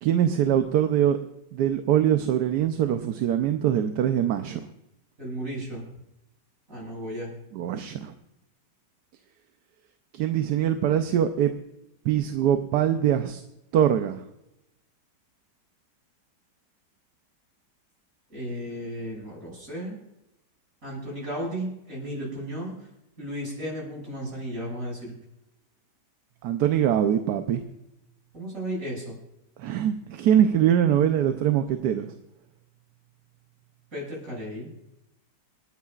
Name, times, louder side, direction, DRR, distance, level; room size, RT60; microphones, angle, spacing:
voice 1, 0.0-1.2 1.5-4.6 7.5-8.1 10.1-11.5 12.0-13.4 13.7-14.2 26.4-27.6 29.6-32.1, right 10 dB, 75° right, 7 dB, 1.2 m, -23 dB
voice 2, 5.2-5.9 6.7-7.3 18.3-20.0 20.8-22.8 23.2-25.1 28.3-29.2 33.9-34.7, equal, 50° right, -3 dB, 6.9 m, -34 dB
28.0 x 9.7 x 2.4 m, 0.85 s
omnidirectional pair, 1.9 m